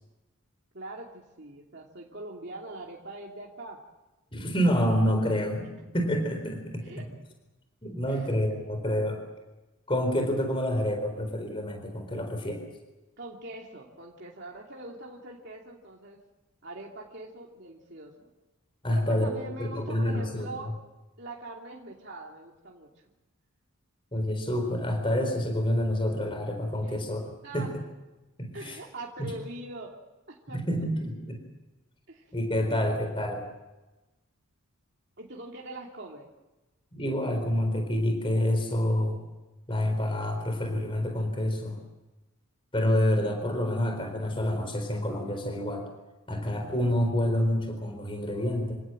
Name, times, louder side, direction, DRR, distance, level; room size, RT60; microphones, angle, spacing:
voice 1, 0.7-3.8 6.8-7.0 8.1-8.3 13.2-16.2 16.6-18.3 18.9-20.7 21.2-22.9 26.8-26.9 27.4-27.7 28.5-29.9 30.3-30.6 32.1-32.3 32.7-32.8 35.2-36.3, right 2 dB, 50° right, -2 dB, 2.7 m, -42 dB
voice 2, 4.3-6.8 7.8-9.2 9.9-12.6 18.8-20.5 24.1-27.2 27.5-27.7 28.4-28.8 29.2-29.3 30.5-31.4 32.3-33.4 36.9-39.2 39.7-41.8 42.7-45.8 46.3-48.8, left 1 dB, 25° left, 4 dB, 4.1 m, -28 dB
27.0 x 17.5 x 7.7 m, 1.1 s
head